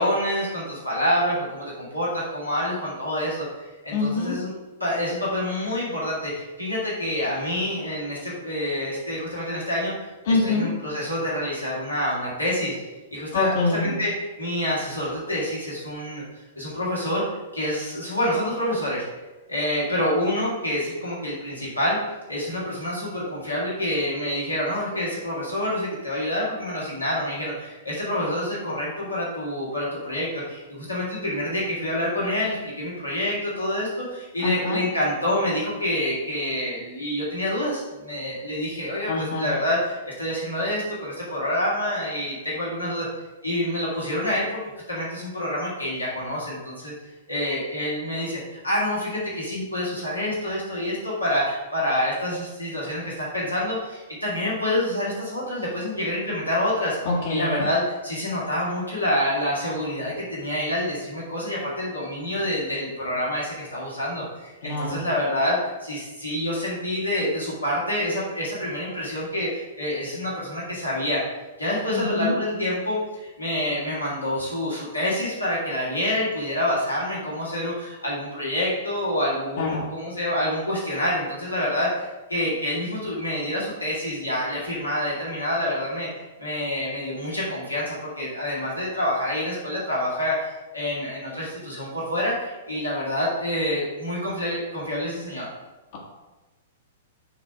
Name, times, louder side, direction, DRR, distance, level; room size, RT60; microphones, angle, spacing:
voice 1, 0.0-4.5 4.8-12.8 13.1-14.1 14.4-16.2 16.6-17.2 17.5-19.0 19.5-22.0 22.3-43.1 43.4-44.5 44.9-46.9 47.3-57.0 57.3-71.2 71.6-86.1 86.4-95.5, left 1 dB, 90° left, -7 dB, 2.0 m, -27 dB
voice 2, 3.9-4.4 10.2-10.7 13.3-13.9 34.4-34.8 39.1-39.5 57.0-57.7 64.6-65.0 71.9-72.6 79.6-79.9, left 3 dB, 55° left, -5 dB, 1.2 m, -25 dB
7.0 x 3.1 x 4.8 m, 1.1 s
figure-of-eight pair, 105°, 0 cm